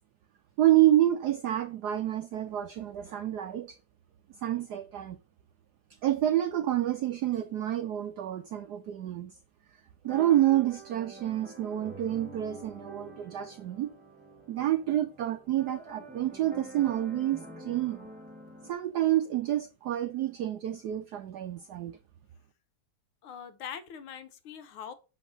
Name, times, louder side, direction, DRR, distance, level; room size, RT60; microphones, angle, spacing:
voice 1, 0.6-3.8 4.4-5.2 6.0-9.3 10.0-13.9 14.5-18.1 18.6-22.0, right 13 dB, 90° right, 0.8 m, -28 dB
sound 1, 10.0-18.7, right 2 dB, 5° right, 1.4 m, -47 dB
voice 2, 23.2-24.9, left 8 dB, 75° left, 1.7 m, -42 dB
8.2 x 3.7 x 6.0 m
omnidirectional pair, 2.4 m